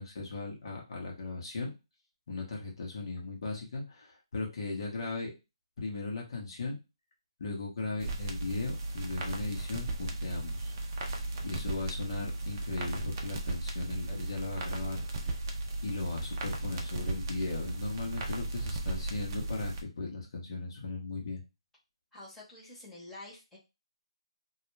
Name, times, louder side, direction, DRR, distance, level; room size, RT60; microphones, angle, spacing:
voice 1, 0.0-1.7 2.3-5.4 5.8-6.7 7.4-11.1 11.4-15.0 15.2-15.4 15.8-21.4, left 3 dB, 50° left, -1 dB, 0.9 m, -37 dB
sound 1, 8.0-19.8, right 2 dB, 35° right, 0.5 m, -36 dB
voice 2, 22.1-23.6, left 2 dB, 5° left, -8 dB, 1.0 m, -48 dB
2.3 x 2.2 x 3.1 m, 0.26 s
hypercardioid pair, 155°, 3 cm